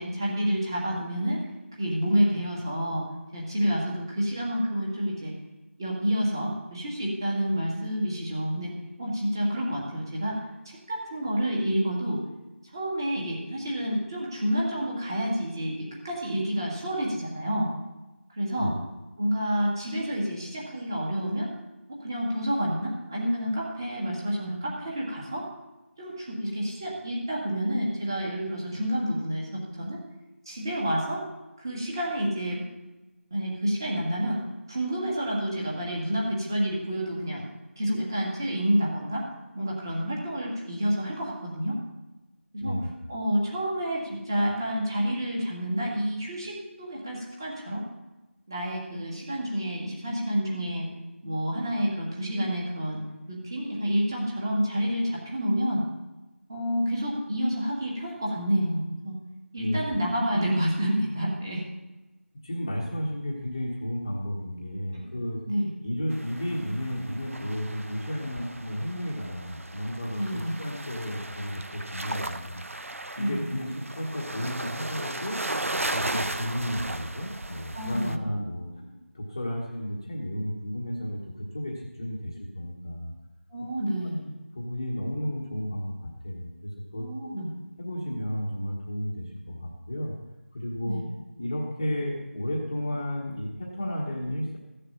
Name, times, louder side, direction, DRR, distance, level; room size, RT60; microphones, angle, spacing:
voice 1, 0.0-1.5 1.8-3.1 3.3-5.3 5.8-12.2 12.7-17.7 18.3-18.7 19.2-21.5 21.9-25.5 26.0-30.0 30.5-31.3 31.6-32.6 33.3-34.4 34.7-37.4 37.8-39.3 39.5-41.8 42.5-42.8 43.1-47.8 48.5-50.9 51.2-53.0 53.3-55.8 56.5-59.2 59.5-61.6 64.9-65.0 65.5-65.7 70.2-70.5 73.2-73.5 77.7-78.3 83.5-84.3 87.0-87.5 90.9-91.1, equal, 20° right, -4 dB, 2.3 m, -29 dB
voice 2, 59.6-60.0 60.3-60.5 62.4-65.4 65.8-72.6 73.2-75.4 75.9-83.1 84.5-85.9 86.2-87.3 87.8-90.1 90.5-91.0 91.4-94.6, equal, 20° left, -3 dB, 1.3 m, -33 dB
sound 1, 66.1-78.2, right 2 dB, 75° right, 0.9 m, -36 dB
15.5 x 6.7 x 7.1 m, 1.0 s
figure-of-eight pair, 175°, 7 cm